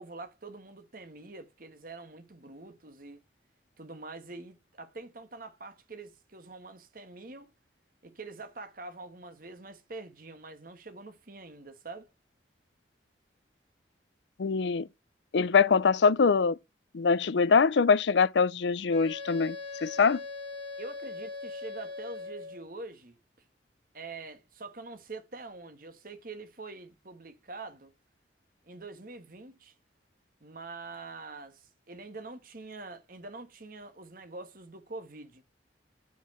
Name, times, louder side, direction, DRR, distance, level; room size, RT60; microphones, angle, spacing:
voice 1, 0.0-3.2 3.8-7.5 8.0-12.1 20.8-23.2 23.9-27.9 28.6-29.7 30.4-35.4, right 3 dB, 50° right, 1.4 m, -45 dB
voice 2, 14.4-14.9 15.3-16.6 16.9-20.2, left 5 dB, 75° left, 0.5 m, -23 dB
Wind instrument woodwind instrument, 18.9-22.7, left 3 dB, 30° right, 2.1 m, -40 dB
9.1 x 4.7 x 4.3 m
head